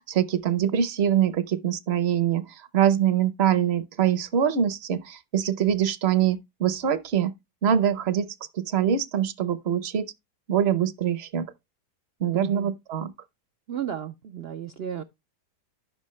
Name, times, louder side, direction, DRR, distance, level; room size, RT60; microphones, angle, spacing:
voice 1, 0.0-7.3 7.6-8.3 8.5-10.1 10.5-11.5 12.2-13.1, right 9 dB, 50° right, 0.8 m, -24 dB
voice 2, 12.3-12.7 13.7-15.0, right 9 dB, 80° right, 0.5 m, -33 dB
10.5 x 6.1 x 3.1 m
omnidirectional pair, 1.8 m